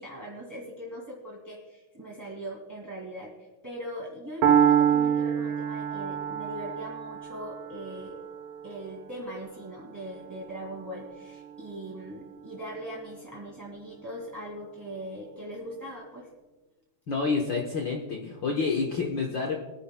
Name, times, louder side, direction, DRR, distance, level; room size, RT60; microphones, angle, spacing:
voice 1, 0.0-3.3 3.6-8.1 8.6-16.3, equal, 10° right, -3 dB, 1.3 m, -40 dB
Piano, 4.4-12.4, right 9 dB, 80° right, 2.4 m, -28 dB
voice 2, 17.1-19.5, left 4 dB, 80° left, 0 dB, 1.0 m, -28 dB
23.0 x 9.9 x 2.2 m, 1.1 s
omnidirectional pair, 3.7 m